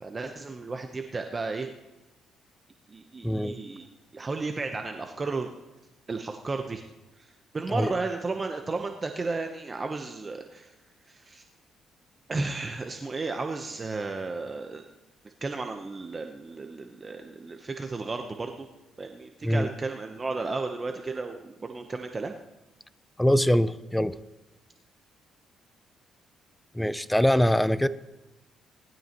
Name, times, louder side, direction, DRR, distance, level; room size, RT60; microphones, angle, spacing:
voice 1, 0.0-1.7 2.9-3.9 4.1-5.5 6.1-6.8 7.2-7.3 7.5-10.7 11.1-11.4 12.3-14.8 15.4-18.7 19.0-22.3, right 3 dB, 30° right, 5 dB, 0.9 m, -33 dB
voice 2, 3.2-3.6 7.7-7.9 19.4-19.7 23.2-24.2 26.7-27.9, equal, 5° left, 15 dB, 0.5 m, -23 dB
19.5 x 12.0 x 3.0 m, 1.0 s
cardioid pair, 90°, 0 cm